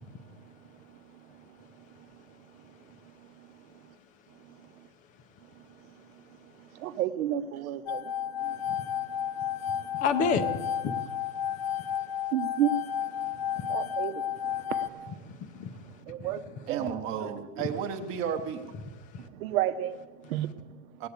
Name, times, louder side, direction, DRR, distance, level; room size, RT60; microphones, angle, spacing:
voice 1, 1.8-2.1 3.0-3.1 3.4-3.5 4.4-4.8 6.3-9.0 9.4-9.9 12.3-15.1 16.1-17.0 17.6-17.7 19.3-20.8, right 10 dB, 65° right, 1.0 m, -34 dB
sound 1, 7.9-14.9, left 9 dB, 45° left, 1.0 m, -32 dB
voice 2, 10.0-11.0 11.5-12.1 13.3-13.7 15.3-15.9 16.2-16.3 19.1-19.3, left 5 dB, 20° left, 0.6 m, -31 dB
voice 3, 16.7-18.7 21.0-21.1, right 7 dB, 25° right, 1.0 m, -33 dB
18.5 x 8.4 x 8.1 m
supercardioid pair, 155°, 45 cm